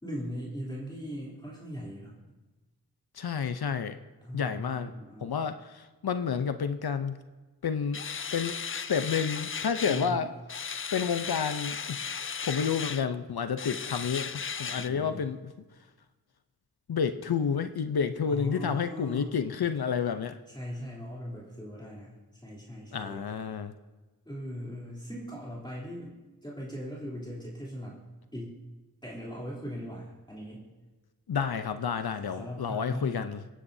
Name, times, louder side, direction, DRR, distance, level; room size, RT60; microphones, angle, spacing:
voice 1, 0.0-2.2 4.2-5.4 9.9-10.2 14.7-15.2 18.3-19.3 20.5-23.2 24.2-28.0 28.3-28.6 29.0-30.7 32.4-33.3, equal, 10° left, -6 dB, 3.3 m, -39 dB
voice 2, 3.1-4.0 4.3-4.9 5.2-7.2 7.6-8.0 8.3-10.3 10.9-12.1 12.4-15.5 16.9-20.4 22.9-23.7 31.3-33.5, left 6 dB, 65° left, 10 dB, 0.7 m, -30 dB
sound 1, 7.9-10.2 10.5-13.1 13.6-14.9, left 6 dB, 35° left, 0.4 m, -36 dB
25.5 x 9.9 x 2.7 m, 1.2 s
wide cardioid pair, 55°, 40 cm